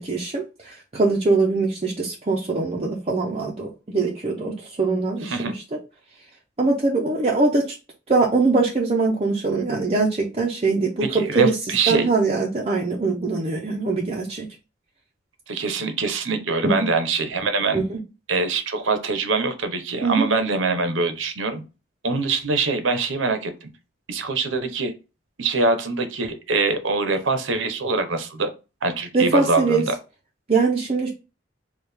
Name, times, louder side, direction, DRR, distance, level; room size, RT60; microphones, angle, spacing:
voice 1, 0.0-5.6 6.6-7.8 8.1-11.0 11.3-11.6 11.9-14.5 16.6-16.9 17.7-18.0 20.0-20.3 29.1-29.8 30.5-31.1, right 3 dB, 30° right, -2 dB, 0.7 m, -22 dB
voice 2, 5.2-5.5 11.0-12.1 15.5-17.8 18.3-21.6 22.0-23.5 24.1-24.9 25.4-28.5 28.8-29.9, right 3 dB, 85° right, 8 dB, 0.8 m, -23 dB
4.7 x 2.4 x 3.3 m, 0.30 s
head